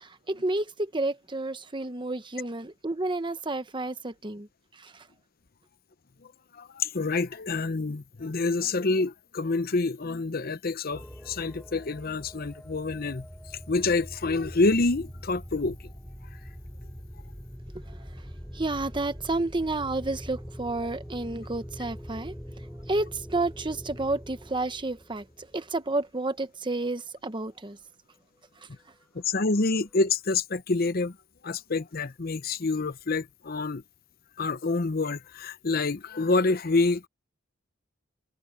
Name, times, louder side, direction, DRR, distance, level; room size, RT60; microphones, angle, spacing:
voice 1, 0.0-4.5 4.7-5.1 17.7-18.1 18.5-22.4 22.9-27.8, right 2 dB, 25° right, 1.0 m, -31 dB
voice 2, 6.6-13.3 13.7-15.8 29.1-31.2 31.4-33.8 34.4-37.1, left 3 dB, 50° left, 0.8 m, -27 dB
sound 1, 10.9-25.8 29.0-29.1 29.4-30.0, equal, 5° left, 4.0 m, -43 dB
head